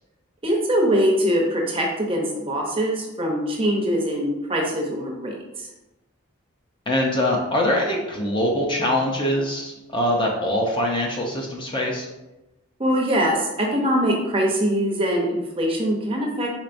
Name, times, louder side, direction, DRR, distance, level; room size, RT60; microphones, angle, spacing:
voice 1, 0.4-5.7 12.8-16.5, equal, 25° right, 0 dB, 0.7 m, -23 dB
voice 2, 6.9-12.1, left 1 dB, 25° left, -1 dB, 0.5 m, -23 dB
4.4 x 4.3 x 2.5 m, 1.0 s
head